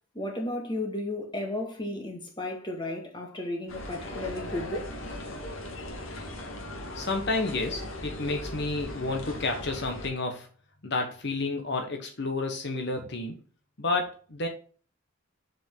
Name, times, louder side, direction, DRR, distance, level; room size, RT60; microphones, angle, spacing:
voice 1, 0.1-4.8, left 1 dB, 25° left, 1.9 m, -34 dB
sound 1, 3.7-10.1, left 1 dB, 85° left, 2.1 m, -38 dB
voice 2, 6.9-10.5 10.8-13.4 13.8-14.5, left 3 dB, 60° left, 1.1 m, -30 dB
7.5 x 5.2 x 3.8 m
head